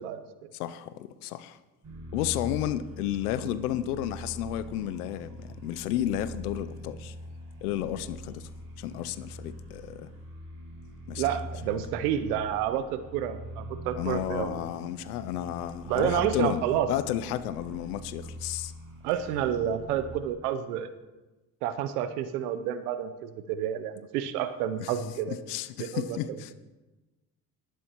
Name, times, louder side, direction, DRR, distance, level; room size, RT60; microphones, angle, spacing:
voice 1, 0.0-0.5 11.2-14.6 15.9-16.9 19.0-20.9 21.6-25.4 25.8-26.4, right 10 dB, 85° right, 11 dB, 0.8 m, -30 dB
voice 2, 0.6-1.6 2.1-7.1 7.6-8.5 8.8-10.1 11.1-11.2 14.0-16.6 16.9-18.7 24.8-24.9 25.3-26.6, left 12 dB, 90° left, 15 dB, 0.6 m, -32 dB
sound 1, 1.8-20.2, equal, 50° right, 5.4 m, -43 dB
18.5 x 12.5 x 3.0 m, 1.1 s
hypercardioid pair, 50°, 44 cm